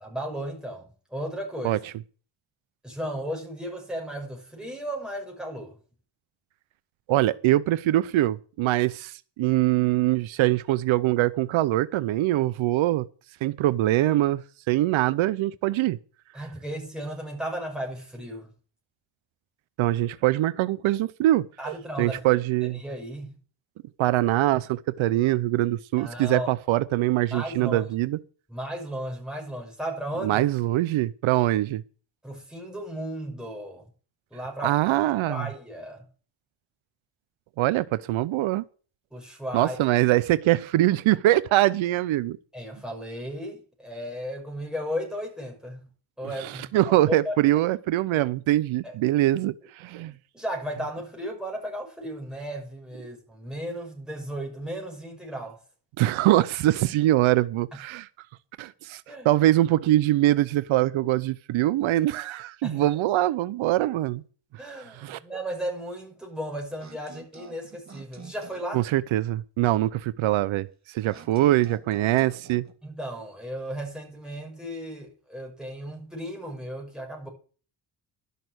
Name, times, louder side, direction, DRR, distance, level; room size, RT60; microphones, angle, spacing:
voice 1, 0.0-1.9 2.8-5.8 16.3-18.5 21.6-22.2 22.6-23.3 26.0-26.5 27.3-27.8 28.5-30.4 32.2-33.9 34.3-34.8 35.3-36.1 39.1-39.8 42.5-45.9 46.2-47.4 48.8-48.9 50.0-55.6 59.1-59.5 62.6-62.9 64.6-68.8 71.1-71.2 72.8-77.3, equal, ahead, 6.1 m, -35 dB
voice 2, 7.1-13.1 13.4-14.4 14.7-16.0 19.8-22.8 24.0-28.2 30.2-31.8 34.6-35.4 37.6-38.6 39.5-42.4 46.4-50.1 56.0-58.1 58.6-64.2 65.0-65.2 68.7-72.6, right 15 dB, 85° right, 0.7 m, -23 dB
sound 1, 66.8-68.8 71.1-72.7, right 5 dB, 35° right, 2.2 m, -48 dB
12.0 x 6.7 x 7.8 m
cardioid pair, 85°, 46 cm